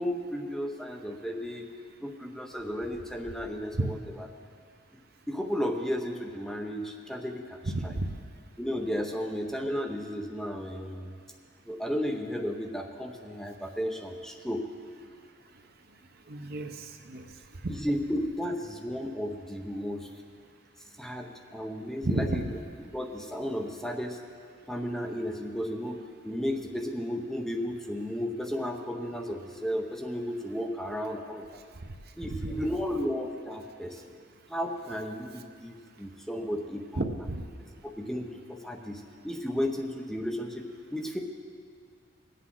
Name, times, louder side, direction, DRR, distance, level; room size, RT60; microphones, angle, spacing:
voice 1, 0.0-1.7 2.0-4.3 4.9-5.0 5.3-7.9 8.6-11.2 11.7-14.7 17.7-20.1 21.0-22.5 22.9-24.2 24.7-31.6 32.2-34.1 34.5-37.0 38.0-40.7 40.9-41.2, equal, ahead, 2 dB, 0.7 m, -34 dB
voice 2, 7.7-8.1 16.3-17.3 17.6-17.7 22.0-22.5 37.0-37.4, right 2 dB, 55° right, 5 dB, 0.8 m, -31 dB
20.0 x 8.4 x 3.8 m, 2.1 s
head